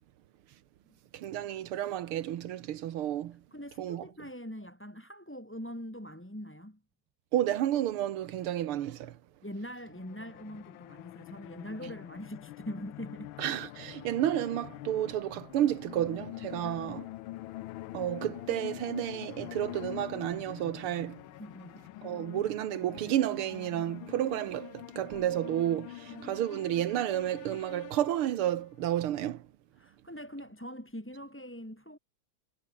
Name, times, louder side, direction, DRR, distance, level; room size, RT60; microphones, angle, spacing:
voice 1, 1.1-3.4 3.8-4.1 7.3-9.2 13.4-17.1 17.9-21.2 22.0-29.5, right 12 dB, 90° right, 2.0 m, -31 dB
voice 2, 3.5-6.8 9.4-13.4 16.6-16.8 21.4-22.0 26.1-26.9 29.8-32.0, equal, 5° left, 2.9 m, -43 dB
sound 1, 9.9-28.6, left 16 dB, 75° left, 1.4 m, -45 dB
omnidirectional pair, 2.3 m